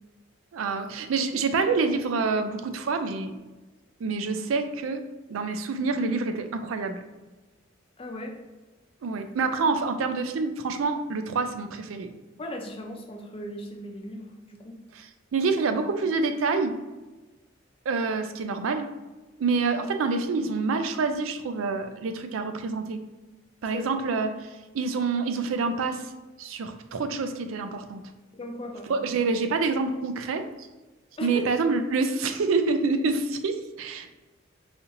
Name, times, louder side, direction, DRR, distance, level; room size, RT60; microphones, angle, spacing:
voice 1, 0.5-3.3 4.0-7.0 9.0-12.1 15.0-15.1 15.3-16.7 17.9-18.9 19.4-23.0 23.6-26.1 26.4-28.0 28.9-30.4 31.2-34.1, right 4 dB, 85° right, 8 dB, 0.4 m, -27 dB
voice 2, 8.0-8.4 12.4-14.8 23.7-23.8 28.3-29.0 31.2-31.5, left 1 dB, 30° left, 2 dB, 0.5 m, -37 dB
4.1 x 2.9 x 2.5 m, 1.2 s
head